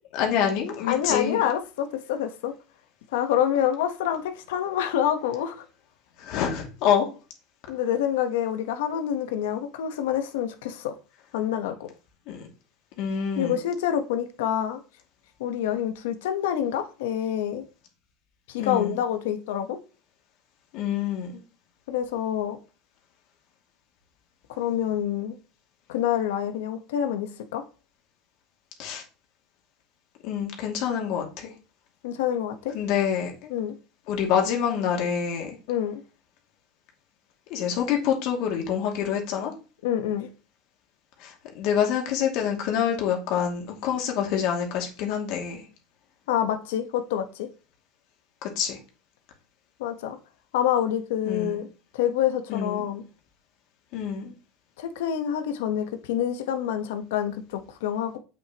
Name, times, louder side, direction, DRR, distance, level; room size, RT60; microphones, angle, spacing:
voice 1, 0.1-1.4 6.2-7.1 12.3-12.5 13.0-13.6 18.6-19.0 20.7-21.4 28.8-29.0 30.2-31.5 32.7-33.5 34.1-35.6 37.5-39.5 41.2-45.6 48.4-48.8 51.2-51.6 52.5-52.9 53.9-54.3, left 8 dB, 65° left, 2.4 m, -27 dB
voice 2, 0.9-2.5 3.1-5.6 7.7-10.9 11.3-11.7 13.4-14.8 15.4-17.6 18.5-19.8 21.9-22.6 24.5-25.4 25.9-27.6 32.0-32.7 33.5-33.7 35.7-36.0 39.8-40.3 46.3-47.5 49.8-50.2 50.5-51.7 51.9-53.0 54.8-58.2, left 10 dB, 85° left, 1.2 m, -27 dB
7.9 x 6.5 x 3.0 m
supercardioid pair, 125°, 0 cm